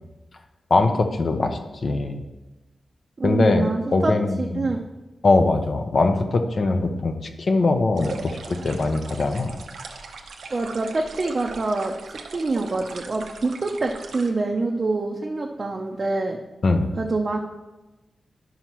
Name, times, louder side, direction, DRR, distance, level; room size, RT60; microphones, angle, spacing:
voice 1, 0.7-2.2 3.2-3.7 3.9-4.7 5.2-8.4 8.6-9.6 16.6-16.9, left 3 dB, 50° left, 6 dB, 0.7 m, -21 dB
voice 2, 3.2-4.8 10.5-16.4 17.0-17.4, right 3 dB, 40° right, 0 dB, 0.6 m, -26 dB
sound 1, 8.0-14.3, right 4 dB, 90° right, 0.8 m, -39 dB
11.5 x 5.6 x 3.0 m, 1.1 s
wide cardioid pair, 115°, 0 cm